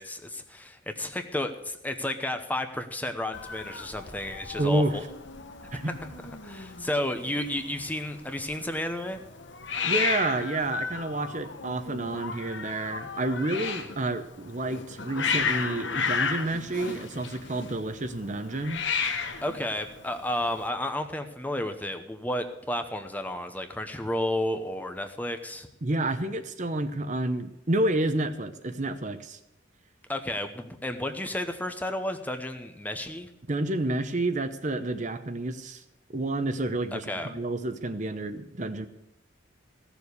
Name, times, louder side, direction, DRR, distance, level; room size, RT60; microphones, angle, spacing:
voice 1, 0.0-5.0 5.7-6.1 6.4-9.2 19.4-25.7 30.1-33.3 36.9-37.3, left 1 dB, 10° left, 7 dB, 0.8 m, -32 dB
Hiss, 3.3-20.7, left 5 dB, 65° left, 1.2 m, -34 dB
voice 2, 4.6-5.0 5.7-5.9 9.8-18.8 25.8-29.4 33.5-35.8 36.1-38.9, right 2 dB, 40° right, 9 dB, 0.8 m, -29 dB
15.5 x 7.1 x 8.1 m, 0.89 s
head